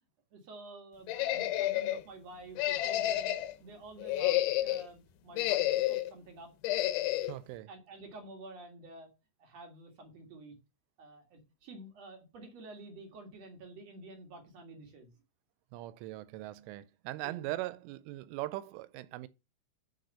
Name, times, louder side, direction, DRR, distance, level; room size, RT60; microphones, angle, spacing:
voice 1, 0.3-3.3 3.6-6.5 6.9-7.1 7.4-9.1 9.4-10.5 11.0-15.1 17.2-17.5, right 2 dB, 55° right, 1.8 m, -50 dB
sound 1, 1.1-2.0 2.6-3.5 4.0-4.9 5.3-6.1 6.6-7.3, left 14 dB, 80° left, 3.0 m, -30 dB
voice 2, 7.3-7.7 15.7-19.3, right 17 dB, 85° right, 3.0 m, -40 dB
6.7 x 6.6 x 5.5 m
omnidirectional pair, 5.7 m